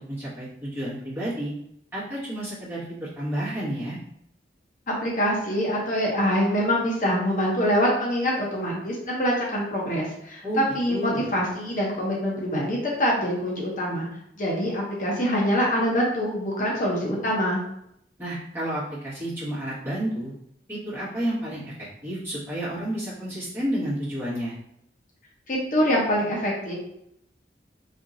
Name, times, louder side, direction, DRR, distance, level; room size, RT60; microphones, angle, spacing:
voice 1, 0.0-1.5 1.9-4.0 10.4-11.3 18.2-20.3 20.7-24.5, equal, 15° right, -10 dB, 1.4 m, -31 dB
voice 2, 4.9-14.1 14.4-17.6 25.5-26.7, equal, 45° left, -3 dB, 0.8 m, -25 dB
4.2 x 2.8 x 2.5 m, 0.76 s
head